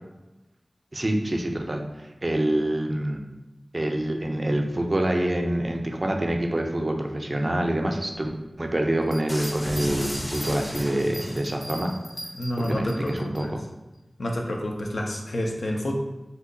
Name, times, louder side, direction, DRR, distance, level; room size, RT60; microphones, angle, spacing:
voice 1, 0.9-3.2 3.7-8.3 8.6-11.9 12.6-13.6, right 1 dB, 45° right, 2 dB, 0.4 m, -26 dB
sound 1, 9.0-13.4, equal, 55° left, 0.8 m, -40 dB
sound 2, 9.3-11.7, equal, 20° left, 0.5 m, -34 dB
voice 2, 12.3-13.5 14.2-16.0, equal, 90° left, 0 dB, 0.4 m, -29 dB
2.7 x 2.2 x 3.7 m, 1.0 s
wide cardioid pair, 50°, 0 cm